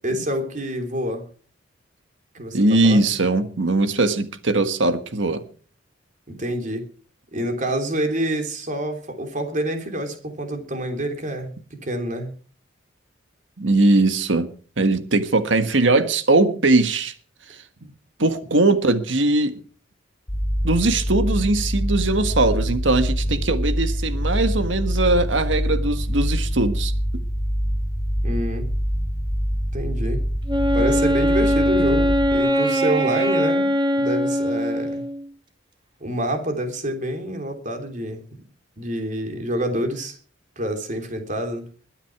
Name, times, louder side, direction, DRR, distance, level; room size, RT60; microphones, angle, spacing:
voice 1, 0.0-1.3 2.4-3.0 6.3-6.9 7.3-12.3 28.2-28.7 29.7-30.2 30.7-35.0 36.0-38.2 38.8-40.2 40.6-41.7, right 1 dB, 45° right, 5 dB, 3.3 m, -27 dB
voice 2, 2.5-5.4 13.6-14.5 14.8-17.1 18.2-19.6 20.6-26.9, right 2 dB, 80° right, 9 dB, 1.6 m, -20 dB
sound 1, 20.3-32.4, equal, 40° left, 2.6 m, -25 dB
Wind instrument woodwind instrument, 30.5-35.3, equal, 25° right, 2.3 m, -21 dB
21.5 x 9.9 x 4.8 m, 0.41 s
head